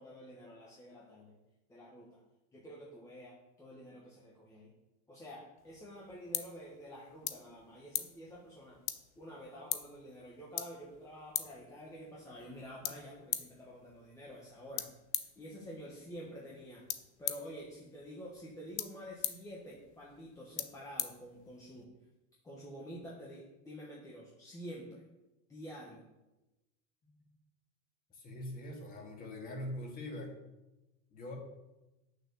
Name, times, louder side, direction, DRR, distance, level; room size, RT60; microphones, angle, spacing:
voice 1, 0.0-1.4 1.7-2.2 2.5-4.7 5.1-8.8 9.2-14.9 15.4-16.9 17.2-21.9 22.4-25.0 25.5-26.0, equal, 10° left, -4 dB, 1.1 m, -49 dB
sound 1, 5.6-21.8, left 13 dB, 70° left, 1.0 m, -43 dB
voice 2, 27.0-27.3 28.1-30.3 31.1-31.4, left 1 dB, 25° left, 1 dB, 2.1 m, -43 dB
8.9 x 6.7 x 6.8 m, 1.0 s
supercardioid pair, 170°, 36 cm